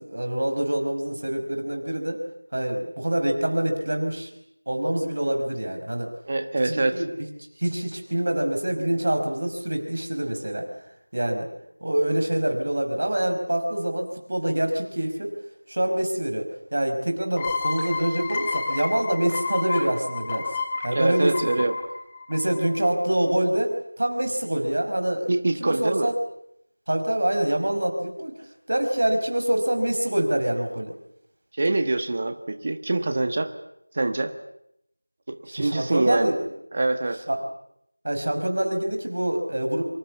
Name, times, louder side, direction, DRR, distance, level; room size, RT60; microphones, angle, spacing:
voice 1, 0.0-2.2 2.5-4.3 4.6-6.1 6.6-7.3 7.6-10.7 11.1-11.5 11.8-15.3 15.7-20.6 20.8-21.6 22.3-25.3 25.6-26.1 26.9-28.3 28.7-30.9 35.5-36.5 37.3-37.4 38.0-39.8, right 1 dB, 40° right, 5 dB, 5.2 m, -25 dB
voice 2, 6.3-7.0 20.9-21.8 25.3-26.1 31.5-33.5 33.9-34.3 35.3-36.3 36.7-37.2, right 2 dB, 25° right, 9 dB, 1.4 m, -25 dB
sound 1, 17.4-22.9, left 4 dB, 10° left, 1.5 m, -30 dB
26.5 x 25.0 x 7.2 m, 0.75 s
figure-of-eight pair, 175°, 0 cm